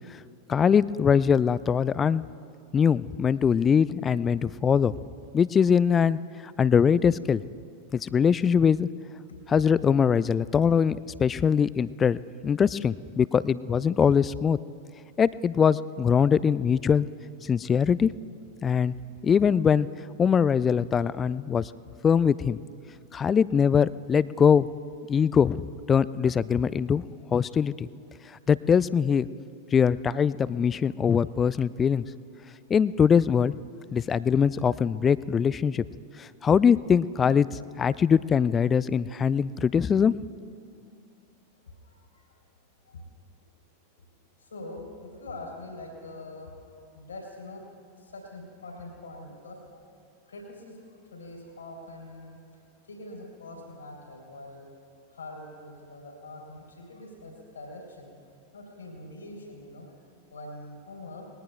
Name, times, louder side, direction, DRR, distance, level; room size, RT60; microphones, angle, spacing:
voice 1, 0.5-2.2 2.7-4.9 5.3-6.2 6.6-7.4 7.9-8.9 9.5-12.2 12.4-14.6 15.2-17.1 17.4-18.1 18.6-18.9 19.2-19.9 20.2-21.7 22.0-22.6 23.1-24.7 25.1-27.0 27.3-27.9 28.5-29.3 29.7-32.0 32.7-33.5 33.9-35.8 36.2-37.5 37.8-40.1, left 7 dB, 20° left, 19 dB, 0.3 m, -22 dB
voice 2, 41.6-42.3 42.8-43.0 44.4-46.5 46.9-47.7 47.9-49.8 50.3-52.4 52.8-54.7 55.1-58.1 58.5-59.9 60.3-61.3, left 2 dB, 70° left, 1 dB, 3.4 m, -44 dB
21.0 x 17.5 x 2.3 m, 2.4 s
figure-of-eight pair, 90°, 0 cm